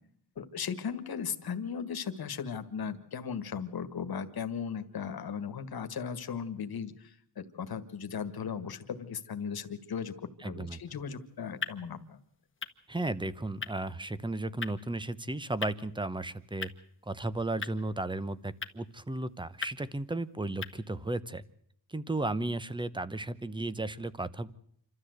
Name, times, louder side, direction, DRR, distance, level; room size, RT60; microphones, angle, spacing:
voice 1, 0.4-12.2, left 7 dB, 60° left, 10 dB, 1.8 m, -37 dB
voice 2, 10.4-10.8 12.9-16.7 17.1-21.4 21.9-24.5, right 2 dB, 10° right, 16 dB, 0.9 m, -34 dB
sound 1, 10.7-21.2, left 5 dB, 30° left, 1.3 m, -45 dB
27.5 x 13.0 x 8.0 m, 0.69 s
wide cardioid pair, 130°, 42 cm